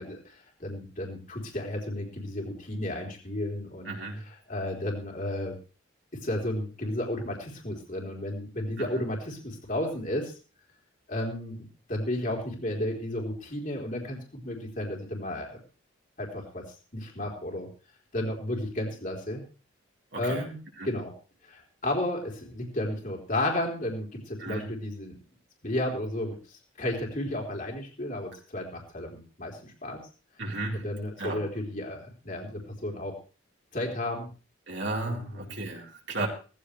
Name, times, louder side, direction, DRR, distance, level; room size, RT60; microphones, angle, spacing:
voice 1, 0.0-3.9 4.3-5.5 6.1-10.3 11.1-15.6 16.2-16.6 16.9-17.7 18.1-19.4 20.2-20.6 20.8-21.1 21.4-25.1 25.6-30.0 30.7-33.2 33.7-34.3 35.1-35.6 36.2-36.3, left 1 dB, 40° left, 0 dB, 4.1 m, -33 dB
voice 2, 3.8-4.2 8.8-9.0 20.1-20.5 20.8-20.9 24.4-24.7 30.4-30.9 31.2-31.4 34.7-36.3, right 2 dB, 55° right, -1 dB, 4.2 m, -34 dB
18.5 x 15.0 x 3.4 m, 0.36 s
head